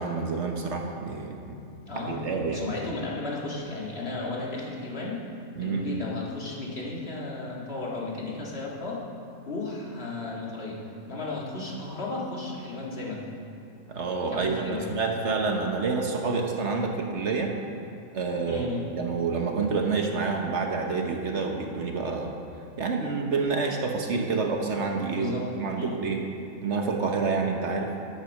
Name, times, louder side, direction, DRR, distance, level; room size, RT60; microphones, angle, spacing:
voice 1, 0.0-1.6 1.9-2.7 5.6-5.9 13.9-17.6 18.1-18.7 19.0-22.4 22.8-26.2 26.6-27.9, right 4 dB, 55° right, 2 dB, 1.2 m, -28 dB
voice 2, 1.9-2.2 2.5-5.2 5.6-9.0 9.5-10.8 11.1-13.3 14.3-14.9 18.4-18.9 25.1-26.0, left 2 dB, 45° left, -4 dB, 2.0 m, -34 dB
10.0 x 8.5 x 6.4 m, 2.6 s
omnidirectional pair, 1.5 m